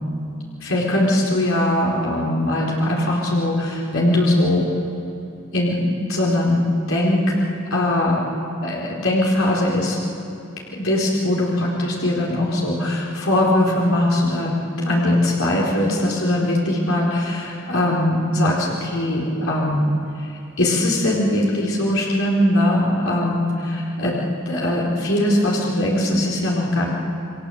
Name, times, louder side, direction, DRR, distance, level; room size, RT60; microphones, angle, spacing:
voice 1, 0.6-4.6 5.5-6.6 6.9-7.4 7.7-8.2 8.6-10.0 10.8-14.5 14.8-19.8 20.2-20.3 20.6-24.1 24.5-26.9, left 1 dB, 85° left, -4 dB, 4.5 m, -20 dB
30.0 x 24.0 x 8.0 m, 2.7 s
head